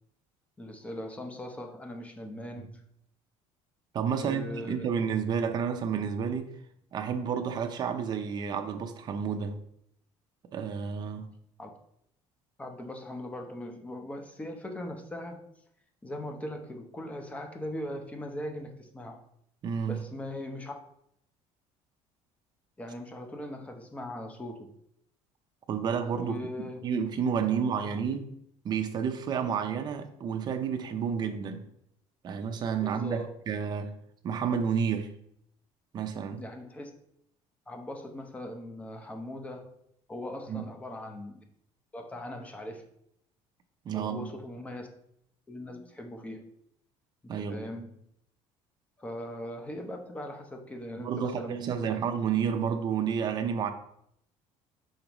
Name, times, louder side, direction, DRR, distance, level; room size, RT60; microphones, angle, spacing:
voice 1, 0.6-2.8 4.1-4.9 11.6-11.7 12.6-15.4 16.0-19.2 19.9-20.7 22.8-24.7 26.2-26.8 32.8-33.3 36.4-36.9 37.7-39.7 40.1-41.4 41.9-42.9 43.9-44.9 45.5-46.5 47.2-48.1 49.0-52.0, left 1 dB, 10° left, 0.7 m, -40 dB
voice 2, 3.9-6.5 6.9-9.6 10.5-11.3 19.6-20.0 25.7-28.3 28.6-31.7 32.2-33.9 34.2-35.1 35.9-36.4 40.5-40.6 43.8-44.3 47.3-47.7 51.0-53.7, right 7 dB, 35° right, 0.6 m, -30 dB
6.0 x 5.2 x 3.0 m
cardioid pair, 150°, 12 cm